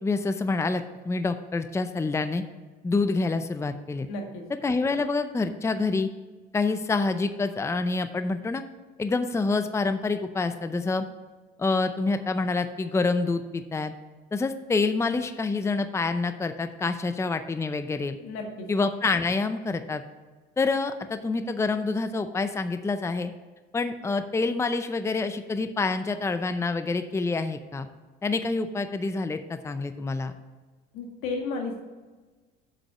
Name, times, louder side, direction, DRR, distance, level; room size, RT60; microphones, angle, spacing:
voice 1, 0.0-2.4 2.8-4.1 4.6-6.1 6.5-8.6 9.0-11.1 11.6-13.9 14.3-18.2 18.7-20.0 20.6-23.3 23.7-27.9 28.2-30.3, left 3 dB, 15° left, 9 dB, 0.5 m, -27 dB
voice 2, 4.1-4.5 18.2-18.7 30.9-31.8, left 3 dB, 85° left, 2 dB, 1.7 m, -33 dB
7.4 x 5.2 x 6.6 m, 1.3 s
supercardioid pair, 95°, 21 cm